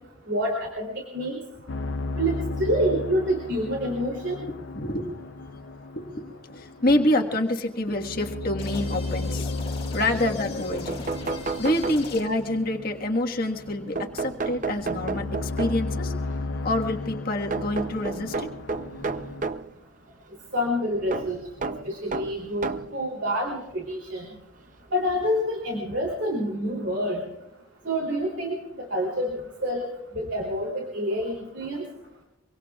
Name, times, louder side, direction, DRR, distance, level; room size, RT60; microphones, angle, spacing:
voice 1, 0.3-1.4 2.2-2.3 2.6-4.4 20.5-24.3 24.9-27.2 27.8-29.8 30.1-31.8, equal, 60° right, -1 dB, 3.2 m, -27 dB
sound 1, 1.7-19.5, left 2 dB, 60° left, 0.5 m, -35 dB
voice 2, 4.4-5.0 5.9-9.5 9.9-11.0 11.6-16.1 16.6-18.5, left 1 dB, 45° left, 2 dB, 1.6 m, -27 dB
sound 2, 8.6-12.5, left 3 dB, 25° left, 2.1 m, -40 dB
sound 3, 10.4-10.5 10.7-12.5 14.0-16.0 17.5-19.7 21.1-23.0 23.8-23.9 25.3-25.4 25.7-25.8, right 4 dB, 40° right, 0.6 m, -32 dB
24.5 x 24.0 x 2.4 m, 0.91 s
head